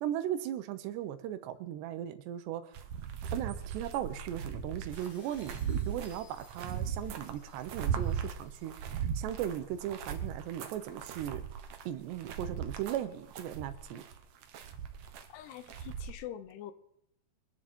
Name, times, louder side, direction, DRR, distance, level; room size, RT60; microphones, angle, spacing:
voice 1, 0.0-2.7 3.3-5.6 5.9-11.4 11.9-14.0, right 11 dB, 90° right, 11 dB, 3.2 m, -37 dB
sound 1, 2.7-16.1, right 8 dB, 75° right, 1.6 m, -38 dB
sound 2, 4.9-9.6, left 3 dB, 50° left, 5.6 m, -61 dB
voice 2, 15.3-16.7, left 11 dB, 80° left, 13 dB, 2.8 m, -44 dB
24.5 x 10.0 x 4.4 m, 0.79 s
omnidirectional pair, 4.8 m